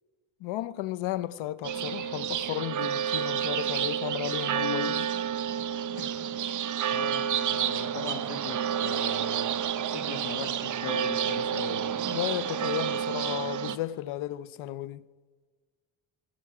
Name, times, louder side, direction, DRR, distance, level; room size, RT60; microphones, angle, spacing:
voice 1, 0.4-5.1 12.1-15.1, left 13 dB, 90° left, 0.7 m, -34 dB
sound 1, 1.6-13.8, right 9 dB, 40° right, 0.6 m, -30 dB
voice 2, 6.9-9.5 9.9-11.8, left 4 dB, 45° left, 1.9 m, -39 dB
21.5 x 10.0 x 4.8 m
cardioid pair, 160°, 47 cm